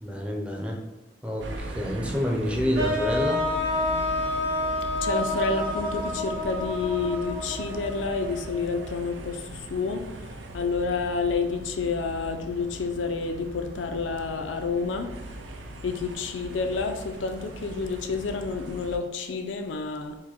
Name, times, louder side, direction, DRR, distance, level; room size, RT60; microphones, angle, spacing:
voice 1, 0.0-0.8 1.2-3.4, left 1 dB, 5° right, 0 dB, 0.5 m, -28 dB
sound 1, 1.4-19.0, right 1 dB, 80° right, 0.5 m, -39 dB
sound 2, 2.8-8.8, left 2 dB, 50° right, 1.3 m, -29 dB
voice 2, 4.9-15.2 15.8-20.2, left 4 dB, 85° left, 6 dB, 0.5 m, -29 dB
4.8 x 2.2 x 4.2 m, 1.1 s
head